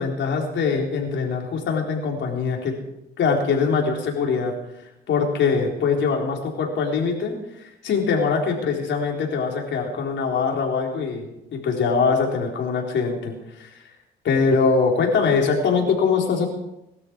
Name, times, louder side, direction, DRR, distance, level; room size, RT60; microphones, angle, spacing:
voice 1, 0.0-2.8 3.2-4.5 5.1-11.3 11.5-13.7 14.2-16.5, left 5 dB, 70° left, 0 dB, 4.2 m, -22 dB
21.0 x 12.5 x 4.8 m, 0.88 s
cardioid pair, 90°, 20 cm